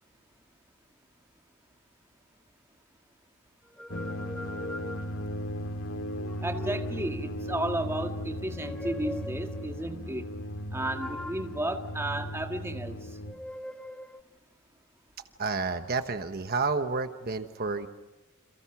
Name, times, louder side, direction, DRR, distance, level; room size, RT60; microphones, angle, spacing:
sound 1, 3.7-5.5 6.1-7.4 8.4-9.7 10.8-12.7 13.2-14.2, left 1 dB, 5° left, 0.8 m, -42 dB
sound 2, 3.9-13.3, equal, 85° left, 2.2 m, -36 dB
voice 1, 6.4-10.3 10.7-13.0, right 1 dB, 15° right, 4 dB, 1.9 m, -33 dB
voice 2, 15.4-17.9, right 4 dB, 50° right, 7 dB, 1.1 m, -30 dB
29.0 x 28.0 x 6.0 m, 1.1 s
head